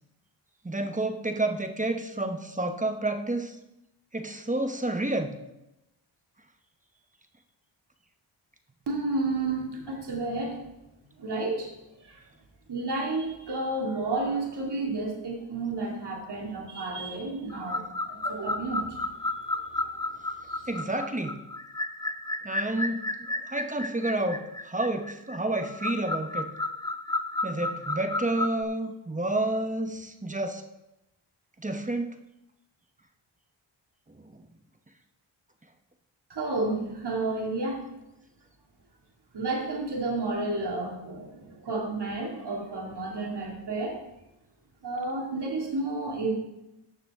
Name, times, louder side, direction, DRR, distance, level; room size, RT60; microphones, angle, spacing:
voice 1, 0.6-3.6 4.1-5.4 20.7-21.4 22.4-23.0 23.4-26.5 27.4-30.6 31.6-32.1, right 2 dB, 15° right, 7 dB, 0.9 m, -29 dB
voice 2, 8.9-10.6 11.2-11.7 12.1-12.2 12.7-18.8 20.5-20.6 36.3-37.8 39.3-44.0 44.8-46.3, right 2 dB, 55° right, -1 dB, 2.5 m, -31 dB
sound 1, 17.5-28.6, left 2 dB, 10° left, 0.4 m, -33 dB
15.0 x 5.8 x 3.6 m, 0.92 s
cardioid pair, 70°, 49 cm